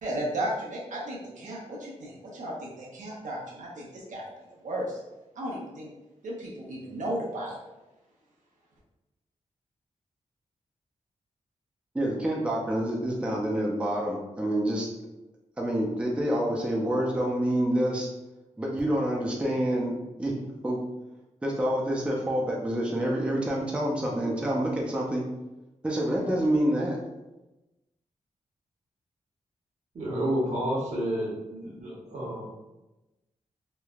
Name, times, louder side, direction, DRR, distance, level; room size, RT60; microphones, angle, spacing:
voice 1, 0.0-4.3 4.6-5.0 5.4-5.9 6.2-7.6, right 1 dB, 80° right, -3 dB, 0.6 m, -34 dB
voice 2, 11.9-14.9 15.6-18.1 18.6-20.3 20.6-20.8 21.4-25.2 25.8-27.0, right 1 dB, 10° right, -2 dB, 0.4 m, -27 dB
voice 3, 29.9-32.5, right 1 dB, 65° right, -5 dB, 1.0 m, -30 dB
3.1 x 2.1 x 2.3 m, 1.0 s
wide cardioid pair, 150°, 13 cm